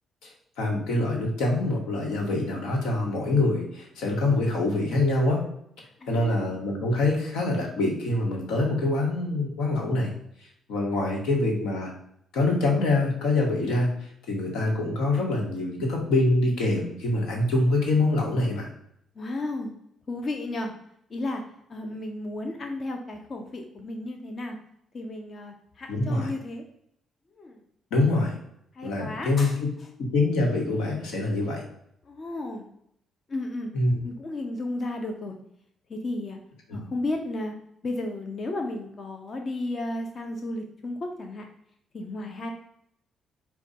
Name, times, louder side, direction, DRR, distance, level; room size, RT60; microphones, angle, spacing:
voice 1, 0.6-5.4 6.1-10.1 10.7-11.9 12.3-13.9 14.3-18.7 25.9-26.3 27.9-28.4 28.8-29.7 30.0-31.6 33.7-34.0 36.7-36.8, left 2 dB, 90° left, 0 dB, 1.1 m, -25 dB
voice 2, 6.0-6.6 19.1-19.7 20.1-20.7 21.1-21.4 21.7-24.6 24.9-26.6 27.4-27.6 28.7-29.6 32.0-32.7 33.3-33.7 34.0-35.3 35.9-36.4 36.7-37.5 37.8-41.5 41.9-42.5, left 2 dB, 40° left, 3 dB, 0.6 m, -33 dB
4.7 x 2.2 x 4.1 m, 0.73 s
cardioid pair, 90°, 0 cm